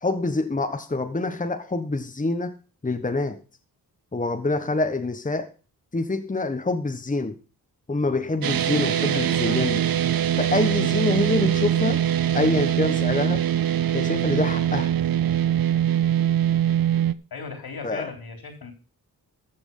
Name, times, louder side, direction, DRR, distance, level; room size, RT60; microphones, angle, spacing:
voice 1, 0.0-2.5 2.8-3.4 4.1-5.5 5.9-7.3 7.9-9.8 10.4-12.0 12.3-13.4 13.9-14.9 17.8-18.1, left 2 dB, 20° left, 6 dB, 1.3 m, -26 dB
sound 1, 8.4-17.1, right 10 dB, 60° right, 0.7 m, -22 dB
voice 2, 9.1-9.6 17.3-18.7, left 4 dB, 65° left, 5 dB, 3.9 m, -37 dB
14.0 x 6.2 x 5.5 m, 0.35 s
cardioid pair, 65°, 40 cm